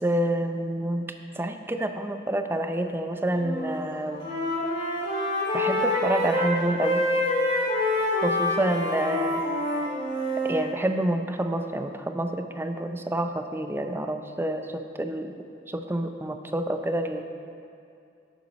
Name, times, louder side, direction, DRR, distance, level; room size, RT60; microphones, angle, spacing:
voice 1, 0.0-1.1 1.3-4.3 5.5-7.0 8.2-9.4 10.4-15.3 15.7-17.2, right 1 dB, 15° right, 6 dB, 0.5 m, -28 dB
Wind instrument woodwind instrument, 3.3-3.8 4.1-10.6, left 1 dB, 30° left, 2.7 m, -26 dB
11.5 x 8.8 x 4.2 m, 2.5 s
head